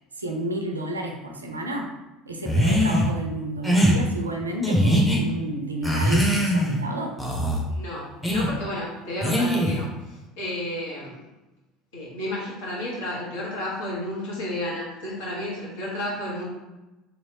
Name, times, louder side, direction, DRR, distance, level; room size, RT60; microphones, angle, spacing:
voice 1, 0.2-1.9 2.3-7.1, right 1 dB, 85° right, 2 dB, 0.4 m, -31 dB
sound 1, 2.5-3.1 3.6-4.0 4.6-5.2 5.8-6.8 7.2-7.6 8.2-8.5 9.2-9.8, equal, 5° left, 0.7 m, -21 dB
voice 2, 7.7-11.2 11.9-16.4, left 1 dB, 65° left, -5 dB, 1.2 m, -32 dB
3.2 x 2.9 x 2.8 m, 1.0 s
figure-of-eight pair, 65°, 0 cm